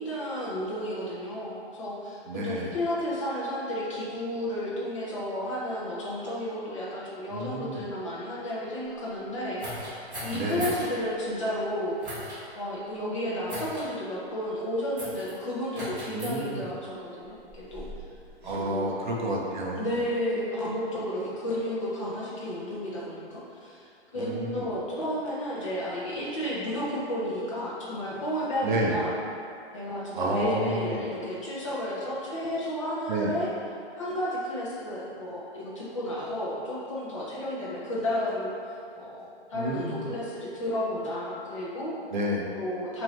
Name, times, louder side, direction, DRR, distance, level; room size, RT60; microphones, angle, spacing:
voice 1, 0.0-12.0 12.5-17.9 18.6-18.9 19.8-29.2 29.7-33.5 34.0-42.0 42.5-43.0, equal, 30° left, -7 dB, 0.6 m, -32 dB
voice 2, 2.3-2.7 7.3-7.8 10.3-10.7 16.1-16.7 18.4-19.9 24.2-24.6 28.6-29.0 30.1-31.0 33.1-33.3 39.5-40.1 42.1-42.4, right 1 dB, 45° right, -2 dB, 0.5 m, -30 dB
sound 1, 9.6-10.9 12.0-12.4 13.5-13.9 15.0-15.3 15.7-16.3 17.2-18.7, equal, 20° right, 1.3 m, -38 dB
4.4 x 2.6 x 3.0 m, 2.5 s
hypercardioid pair, 165°, 33 cm